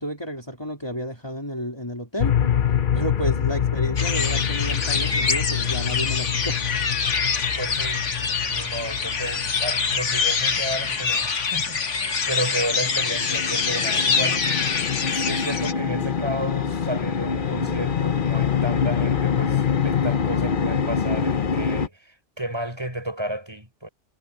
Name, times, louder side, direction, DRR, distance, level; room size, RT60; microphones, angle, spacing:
voice 1, 0.0-2.4 2.9-6.7, equal, 20° left, 3.3 m, -31 dB
sound 1, 2.2-21.9, left 7 dB, 50° left, 0.9 m, -26 dB
sound 2, 4.0-15.7, left 5 dB, 80° left, 1.9 m, -25 dB
voice 2, 7.6-14.5 15.1-23.9, right 1 dB, 20° right, 6.0 m, -32 dB
omnidirectional pair, 1.2 m